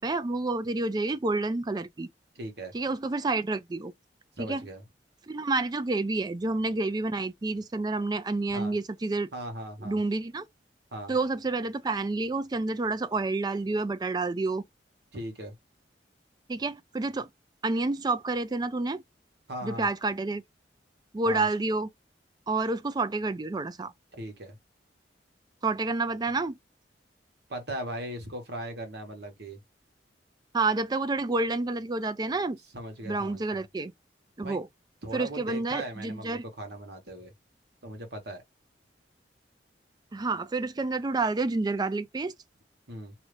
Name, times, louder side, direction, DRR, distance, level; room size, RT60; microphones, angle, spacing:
voice 1, 0.0-2.1 2.7-3.9 4.4-4.7 5.3-9.3 9.8-10.5 11.1-14.6 16.5-17.3 17.6-19.0 19.6-20.4 21.1-21.9 22.5-23.9 25.6-26.6 30.5-32.6 33.0-33.9 34.4-34.7 35.1-36.4 40.1-42.3, right 3 dB, 25° right, 0.4 m, -29 dB
voice 2, 2.3-2.7 4.4-4.8 8.5-8.8 9.3-10.0 10.9-11.1 15.1-15.5 19.5-19.9 21.2-21.5 24.2-24.6 27.5-29.6 32.7-33.6 34.4-34.6 35.0-37.3 37.8-38.4 42.9-43.1, right 1 dB, 65° right, 1.2 m, -38 dB
2.7 x 2.5 x 3.3 m
head